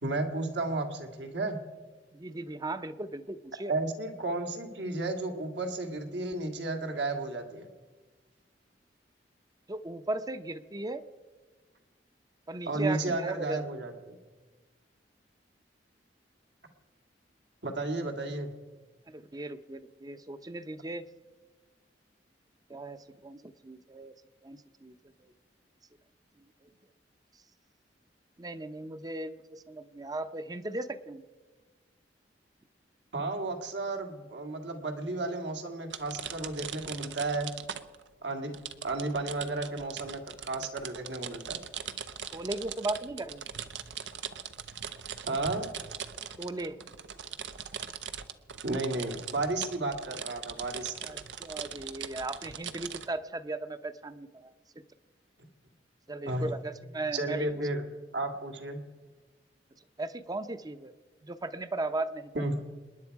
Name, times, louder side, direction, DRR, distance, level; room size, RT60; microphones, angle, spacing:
voice 1, 0.0-1.6 3.7-7.7 12.7-14.2 17.6-18.5 33.1-37.5 38.2-38.6 38.8-41.6 45.3-45.7 48.6-50.9 56.3-56.5 57.1-57.8 58.1-58.8 62.4-62.6, right 2 dB, 75° right, 4 dB, 2.0 m, -33 dB
voice 2, 2.1-3.8 9.7-11.0 12.5-13.6 19.1-21.0 22.7-24.1 24.4-25.3 26.4-26.7 28.4-31.2 42.3-43.5 46.4-46.9 51.0-54.5 56.1-57.5 60.0-60.9 61.2-62.3, right 2 dB, 20° right, 11 dB, 0.7 m, -37 dB
sound 1, 35.9-38.1 38.5-53.1, right 8 dB, 90° right, 0.8 m, -41 dB
27.0 x 10.5 x 4.7 m, 1.3 s
head